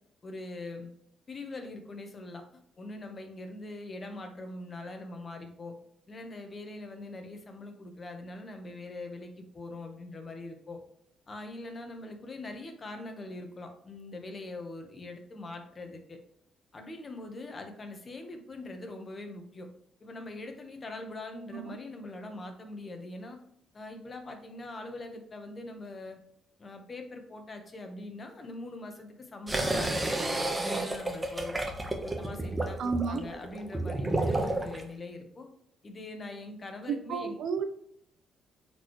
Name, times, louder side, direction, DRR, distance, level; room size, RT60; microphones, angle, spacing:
voice 1, 0.2-0.9 1.3-2.4 2.8-5.8 6.1-10.8 11.3-16.2 16.7-19.7 20.0-23.4 23.7-26.2 26.6-31.6 32.0-35.5 35.8-37.4, left 2 dB, 35° left, 5 dB, 1.3 m, -42 dB
sound 1, 29.5-34.8, right 2 dB, 15° right, 1.2 m, -31 dB
voice 2, 32.8-33.3 36.9-37.7, right 5 dB, 70° right, 9 dB, 0.8 m, -31 dB
9.0 x 4.6 x 3.2 m, 0.71 s
cardioid pair, 90°, 0 cm